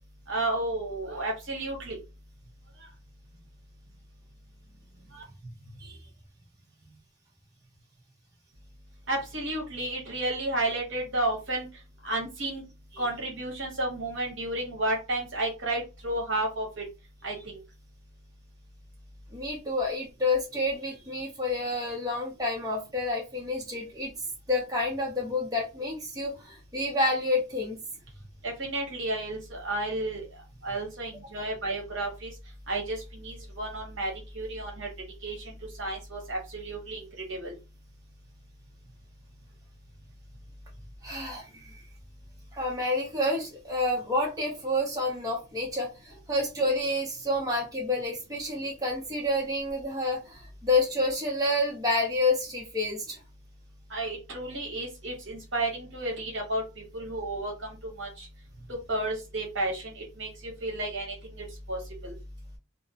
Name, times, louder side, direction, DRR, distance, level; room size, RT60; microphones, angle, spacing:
voice 1, 0.3-2.0 5.1-5.2 9.1-11.7 12.0-12.6 13.0-16.8 17.2-17.6 28.4-30.2 30.6-32.3 32.7-34.9 35.2-37.5 53.9-57.7 58.0-58.3 58.7-62.1, right 2 dB, 65° right, 0 dB, 0.9 m, -32 dB
voice 2, 19.3-24.1 24.5-27.8 41.0-41.7 42.5-53.2, left 2 dB, 15° right, -2 dB, 0.6 m, -29 dB
2.7 x 2.0 x 2.7 m, 0.28 s
head